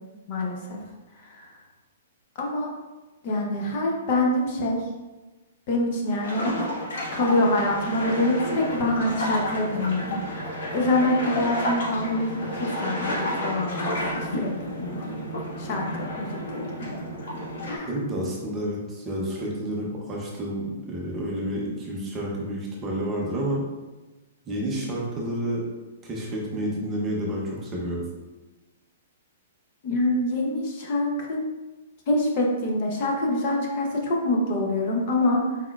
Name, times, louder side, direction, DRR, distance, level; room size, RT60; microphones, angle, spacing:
voice 1, 0.3-0.8 1.2-1.6 2.4-2.7 3.2-4.8 5.7-6.5 7.1-10.2 10.7-15.2 15.6-17.0 17.7-17.9 29.8-31.4 32.1-35.6, left 1 dB, 35° left, 0 dB, 0.7 m, -25 dB
sound 1, 6.2-17.8, left 1 dB, 70° left, 1.4 m, -31 dB
voice 2, 17.9-23.6 24.5-25.6 26.0-28.0, right 1 dB, 15° right, -3 dB, 0.6 m, -30 dB
4.3 x 4.1 x 2.4 m, 1.1 s
hypercardioid pair, 175°, 0 cm